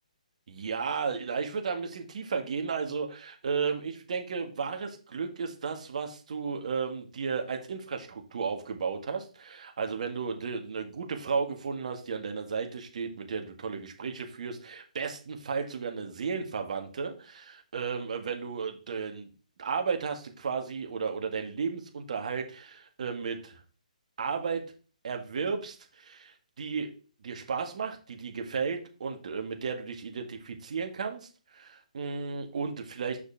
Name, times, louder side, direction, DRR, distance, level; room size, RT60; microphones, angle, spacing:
voice 1, 0.5-19.3 19.6-23.6 24.2-24.6 25.0-26.9 27.2-33.2, right 5 dB, 55° right, 4 dB, 1.8 m, -34 dB
7.1 x 6.3 x 3.5 m, 0.37 s
figure-of-eight pair, 140°, 4 cm